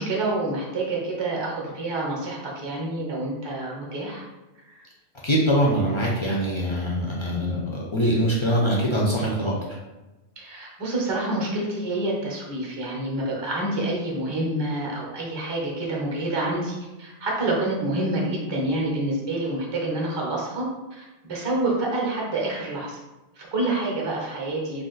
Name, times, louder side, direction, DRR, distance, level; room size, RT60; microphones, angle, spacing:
voice 1, 0.0-4.2 10.4-16.7 17.0-20.7 21.0-23.0 23.4-24.9, right 2 dB, 30° right, -3 dB, 0.6 m, -27 dB
voice 2, 5.2-9.5, equal, 45° left, -4 dB, 0.4 m, -23 dB
2.5 x 2.3 x 3.8 m, 1.1 s
omnidirectional pair, 1.1 m